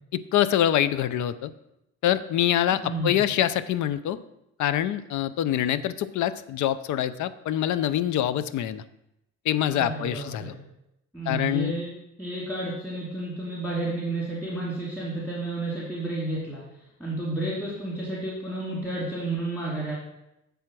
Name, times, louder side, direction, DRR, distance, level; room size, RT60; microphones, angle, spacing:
voice 1, 0.1-1.5 2.0-4.2 4.6-8.8 9.5-10.5 11.3-11.7, left 11 dB, 75° left, 14 dB, 0.5 m, -25 dB
voice 2, 2.8-3.2 9.7-10.6 11.1-11.9 12.2-19.9, right 2 dB, 10° left, -6 dB, 2.3 m, -31 dB
8.5 x 3.4 x 6.1 m, 0.86 s
cardioid pair, 90°, 30 cm